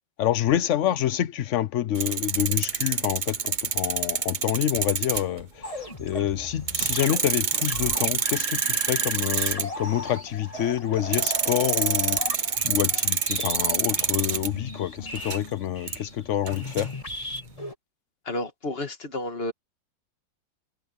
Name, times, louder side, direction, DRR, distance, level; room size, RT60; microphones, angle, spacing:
voice 1, 0.2-16.9, left 11 dB, 65° left, 0.8 m, -27 dB
sound 1, 1.9-5.4 6.1-6.2 6.7-9.6 11.1-14.5 15.0-15.4 15.9-16.0 16.5-17.4, right 6 dB, 45° right, 0.6 m, -27 dB
sound 2, 5.6-17.7, left 1 dB, 20° left, 2.9 m, -37 dB
voice 2, 18.3-19.5, left 2 dB, 35° left, 1.9 m, -31 dB
omnidirectional pair, 1.9 m